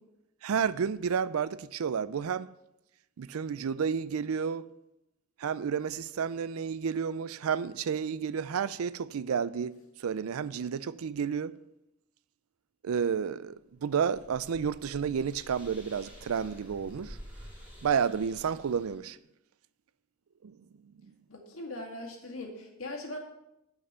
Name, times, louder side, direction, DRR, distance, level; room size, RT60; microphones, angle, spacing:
voice 1, 0.4-2.5 3.2-4.7 5.4-9.7 10.0-11.5 12.8-17.2 17.8-19.2 20.4-20.6 20.8-21.1, right 7 dB, 85° right, 0.4 m, -31 dB
sound 1, 13.7-19.0, equal, 5° right, 2.7 m, -49 dB
voice 2, 21.3-23.2, left 1 dB, 70° left, 1.9 m, -40 dB
8.2 x 6.4 x 6.7 m
head